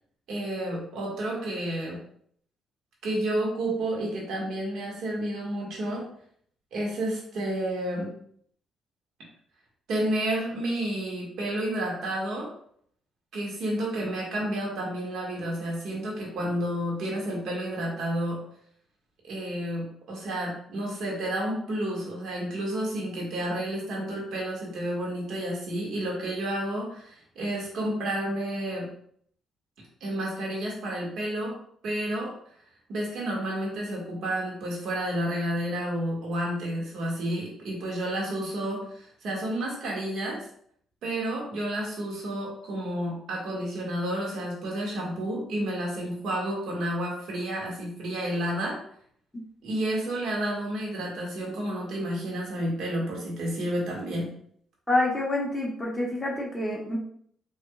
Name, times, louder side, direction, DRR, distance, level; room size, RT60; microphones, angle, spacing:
voice 1, 0.3-2.0 3.0-6.1 6.7-8.1 9.9-12.5 13.3-18.4 19.2-28.9 30.0-31.5 31.8-32.3 32.9-40.4 41.0-48.8 49.6-54.3, right 1 dB, 75° right, -2 dB, 1.7 m, -30 dB
voice 2, 54.9-57.0, left 2 dB, 10° left, -4 dB, 1.1 m, -27 dB
4.9 x 3.1 x 2.3 m, 0.64 s
cardioid pair, 90°, 0 cm